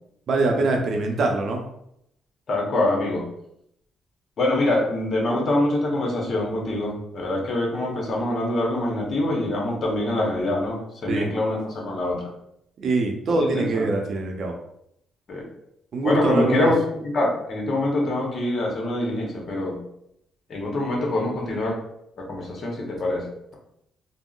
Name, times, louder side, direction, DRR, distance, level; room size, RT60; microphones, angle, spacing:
voice 1, 0.3-1.6 11.1-11.3 12.8-14.5 15.9-16.7, right 3 dB, 60° right, 2 dB, 0.5 m, -23 dB
voice 2, 2.5-3.2 4.4-12.2 13.3-13.9 15.3-15.4 16.0-16.8 17.0-19.8 20.5-21.8 22.2-23.2, left 1 dB, 50° left, -1 dB, 0.9 m, -24 dB
3.5 x 2.0 x 2.4 m, 0.76 s
cardioid pair, 90°, 0 cm